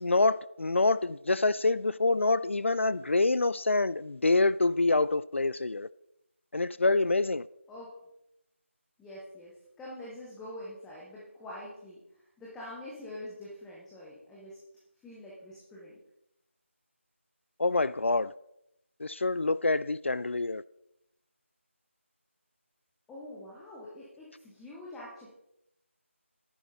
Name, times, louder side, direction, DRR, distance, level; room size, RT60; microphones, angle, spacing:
voice 1, 0.0-5.9 6.5-7.5 17.6-18.3 19.0-20.6, left 3 dB, 65° left, 0.4 m, -26 dB
voice 2, 9.0-14.6 15.0-15.9 23.1-25.3, left 1 dB, 5° left, 0.8 m, -45 dB
11.0 x 11.0 x 4.0 m
figure-of-eight pair, 170°, 7 cm